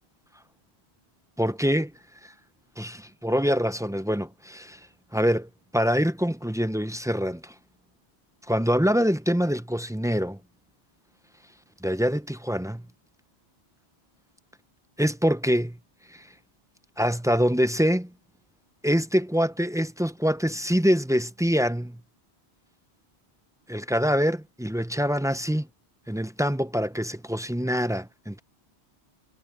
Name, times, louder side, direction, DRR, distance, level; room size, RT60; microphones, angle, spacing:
voice 1, 1.4-1.9 2.8-4.8 5.1-7.5 8.5-10.4 11.8-12.8 15.0-15.8 16.1-16.3 17.0-18.1 18.8-22.0 23.7-25.7 26.1-28.4, equal, 5° right, 0.4 m, -25 dB
omnidirectional pair, 1.1 m